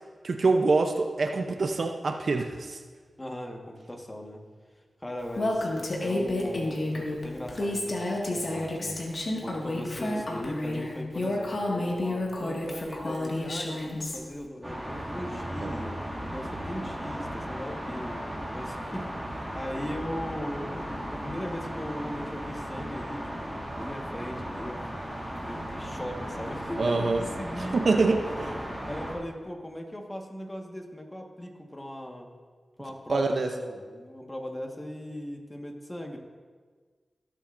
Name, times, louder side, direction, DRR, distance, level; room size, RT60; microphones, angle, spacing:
voice 1, 0.2-2.8 15.6-15.7 26.8-27.2 27.6-28.2 28.5-28.6 33.1-33.5, right 3 dB, 70° right, 5 dB, 0.7 m, -25 dB
voice 2, 3.2-4.4 5.0-16.0 16.3-18.2 18.5-28.1 28.8-32.3 32.8-36.2, equal, 20° left, 2 dB, 1.6 m, -39 dB
Female speech woman speaking, 5.3-14.2, left 1 dB, 60° left, 1.9 m, -30 dB
sound 1, 14.6-29.1, equal, 15° right, 2.3 m, -36 dB
18.5 x 7.5 x 2.6 m, 1.5 s
cardioid pair, 60°, 0 cm